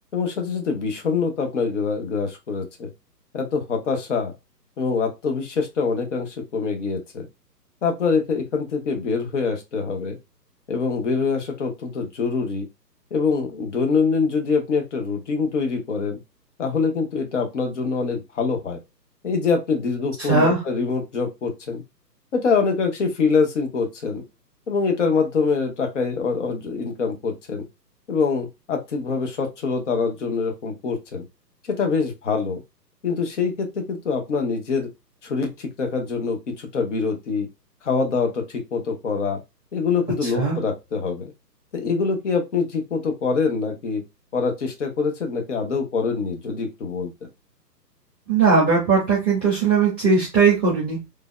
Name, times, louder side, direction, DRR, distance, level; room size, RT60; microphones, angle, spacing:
voice 1, 0.1-2.9 3.3-4.3 4.8-7.3 7.8-10.2 10.7-12.7 13.1-16.2 16.6-18.8 19.2-21.8 22.3-24.2 24.7-27.7 28.1-31.2 31.7-32.6 33.0-34.9 35.2-37.5 37.8-39.4 39.7-41.3 41.7-44.0 44.3-47.1, left 5 dB, 45° left, 5 dB, 0.7 m, -24 dB
voice 2, 20.2-20.6 40.2-40.6 48.3-51.0, right 4 dB, 5° left, -17 dB, 0.5 m, -19 dB
3.2 x 2.0 x 2.2 m, 0.23 s
figure-of-eight pair, 140°, 50 cm